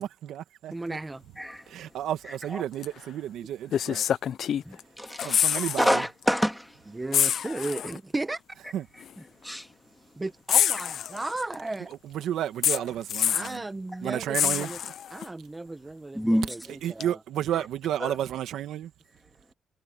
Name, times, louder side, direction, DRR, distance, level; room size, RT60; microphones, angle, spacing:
voice 1, 0.0-1.0 1.7-4.0 5.2-6.0 8.7-8.8 12.0-13.6 14.0-14.7 16.8-18.9, right 11 dB, 80° right, 1.9 m, -32 dB
voice 2, 0.7-1.2 6.9-8.6 10.2-11.9 13.3-14.8 15.1-17.2, right 2 dB, 20° right, 1.2 m, -35 dB
voice 3, 2.3-2.6 4.6-6.8 9.2-9.7 12.7-12.9 14.1-14.2 16.1-16.6 18.0-18.2, equal, ahead, 2.2 m, -28 dB
sound 1, 2.8-3.0 3.7-4.8 5.1-5.9 6.2-6.4 7.1-8.0 9.0-9.1 10.5-11.5 12.6-13.6 14.3-15.3 17.0-17.1, left 9 dB, 65° left, 0.4 m, -26 dB
cardioid pair, 90°, 0 cm